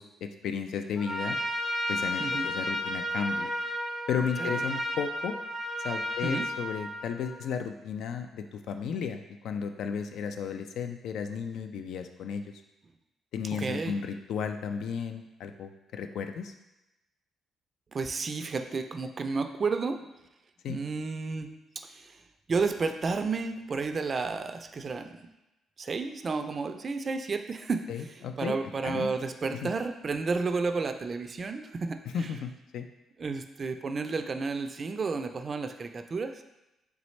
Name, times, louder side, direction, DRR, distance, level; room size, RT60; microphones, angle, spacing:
voice 1, 0.0-1.4 1.9-3.5 4.1-5.3 5.8-12.6 13.3-16.5 20.6-20.8 27.9-28.5 28.8-29.1 29.6-29.7 32.1-32.9, left 6 dB, 75° left, 7 dB, 0.3 m, -34 dB
Trumpet, 1.0-7.5, left 1 dB, 15° left, 0.8 m, -33 dB
voice 2, 2.2-2.5 4.4-4.6 6.2-6.5 13.6-14.0 17.9-20.0 20.7-22.2 22.5-25.2 25.8-32.4 33.2-36.4, right 4 dB, 40° right, 7 dB, 0.3 m, -32 dB
4.0 x 3.4 x 3.1 m, 0.95 s
cardioid pair, 90°, 0 cm